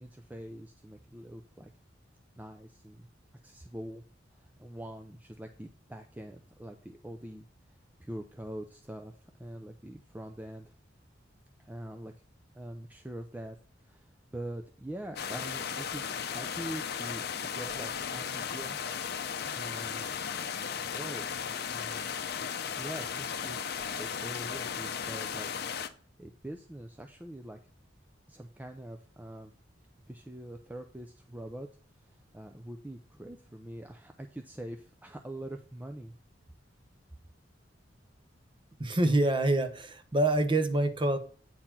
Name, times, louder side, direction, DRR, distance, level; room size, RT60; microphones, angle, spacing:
voice 1, 0.0-1.7 2.4-3.1 3.4-4.0 4.3-10.7 11.6-12.1 12.5-18.8 19.6-20.3 20.9-21.3 21.6-22.1 22.8-25.5 26.2-27.6 28.3-29.5 30.1-31.7 32.0-36.1, right 1 dB, 10° right, 0.5 m, -44 dB
sound 1, 15.2-25.9, left 7 dB, 55° left, 0.7 m, -36 dB
voice 2, 38.8-41.2, right 1 dB, 25° right, 0.9 m, -26 dB
8.9 x 4.2 x 5.8 m
head